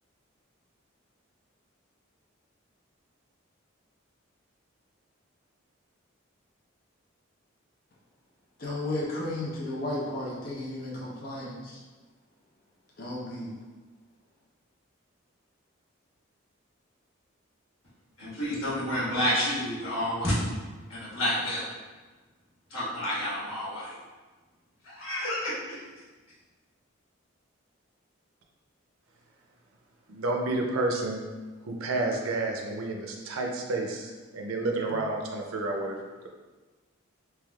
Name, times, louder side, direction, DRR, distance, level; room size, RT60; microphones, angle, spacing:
voice 1, 8.6-11.8 13.0-13.5, left 1 dB, 45° left, -5 dB, 0.6 m, -34 dB
voice 2, 18.2-20.5 20.9-21.7 22.7-24.0 24.8-25.8, equal, 80° left, -10 dB, 1.5 m, -29 dB
voice 3, 30.1-31.2 31.6-36.0, right 2 dB, 90° right, 1 dB, 0.5 m, -30 dB
3.4 x 3.0 x 2.3 m, 1.3 s
head